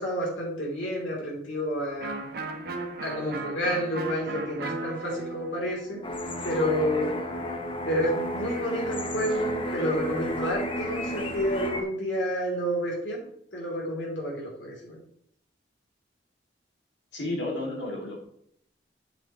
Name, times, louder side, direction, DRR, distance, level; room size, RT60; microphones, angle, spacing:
voice 1, 0.0-2.1 3.0-6.1 6.4-7.1 7.9-13.2 13.5-15.0, equal, 90° left, -3 dB, 3.4 m, -29 dB
Electric guitar, 2.0-7.6, right 2 dB, 60° right, 1.1 m, -37 dB
sound 1, 6.0-11.8, left 1 dB, 30° left, 0.9 m, -32 dB
voice 2, 17.1-18.2, left 2 dB, 75° left, -2 dB, 2.6 m, -32 dB
8.0 x 7.3 x 3.1 m, 0.68 s
head